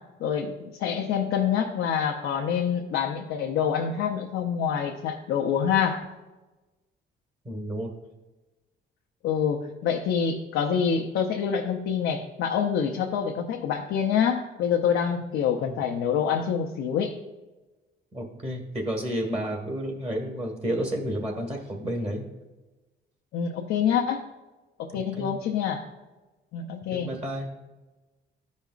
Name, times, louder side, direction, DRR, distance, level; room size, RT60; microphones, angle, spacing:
voice 1, 0.2-6.0 9.2-17.2 23.3-24.3 24.8-25.9 26.5-27.1, left 7 dB, 90° left, 2 dB, 0.6 m, -26 dB
voice 2, 7.5-7.9 15.1-15.2 15.6-15.8 18.1-22.2 24.9-25.3 26.9-27.5, equal, 30° right, 0 dB, 1.7 m, -31 dB
13.0 x 5.3 x 2.4 m, 1.1 s
cardioid pair, 90°, 20 cm